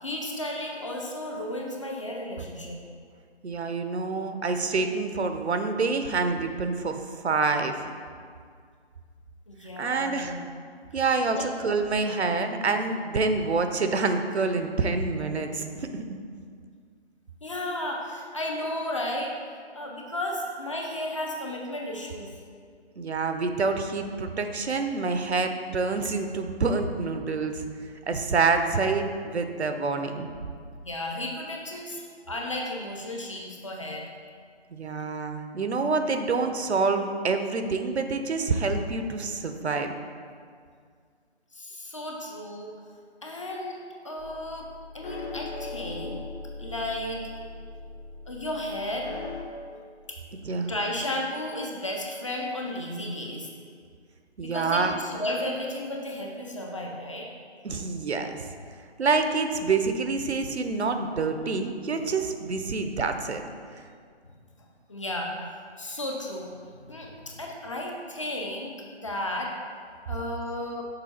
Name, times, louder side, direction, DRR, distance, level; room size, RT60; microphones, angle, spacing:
voice 1, 0.0-2.8 9.5-10.4 11.4-11.5 17.4-19.3 19.7-22.3 30.8-34.1 41.5-42.7 43.2-43.8 44.0-44.7 44.9-46.3 46.6-47.2 48.3-49.1 50.5-53.5 54.4-57.3 64.9-65.3 65.8-69.5 70.1-70.8, left 1 dB, 30° left, 0 dB, 0.6 m, -33 dB
voice 2, 3.4-7.7 9.8-10.3 10.9-16.2 23.0-27.7 28.1-30.3 34.7-39.9 50.4-50.7 54.4-55.0 57.6-58.5 59.0-63.4, right 4 dB, 75° right, 7 dB, 0.7 m, -27 dB
sound 1, 44.2-49.4, left 3 dB, 50° left, 1.0 m, -40 dB
6.8 x 4.4 x 4.3 m, 2.1 s
figure-of-eight pair, 155°, 33 cm